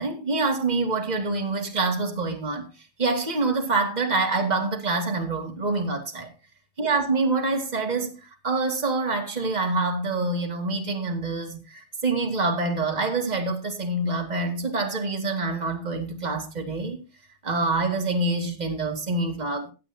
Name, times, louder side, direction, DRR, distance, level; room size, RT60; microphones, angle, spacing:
voice 1, 0.0-2.7 3.0-6.3 6.8-17.0 17.4-19.7, right 3 dB, 20° right, 1.9 m, -26 dB
16.0 x 9.5 x 2.8 m
omnidirectional pair, 2.4 m